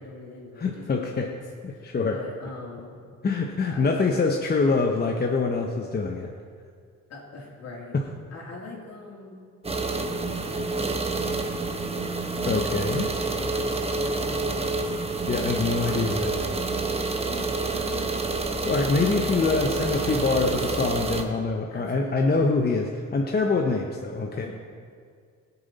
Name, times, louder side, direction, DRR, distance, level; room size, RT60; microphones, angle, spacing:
voice 1, 0.0-0.8 1.1-1.4 1.7-3.0 3.6-4.2 7.1-8.0 8.3-9.4 9.7-11.6 13.4-15.1 17.2-18.6 19.6-21.3 21.7-22.5 24.3-24.5, left 2 dB, 55° left, -3 dB, 3.1 m, -41 dB
voice 2, 0.6-1.3 1.6-2.2 3.2-6.3 7.9-8.0 12.5-13.1 15.3-16.5 18.6-24.5, left 4 dB, 30° left, 2 dB, 0.9 m, -25 dB
sound 1, 9.6-21.2, right 3 dB, 20° right, 1.1 m, -28 dB
16.5 x 7.0 x 4.1 m, 2.1 s
cardioid pair, 90°, 30 cm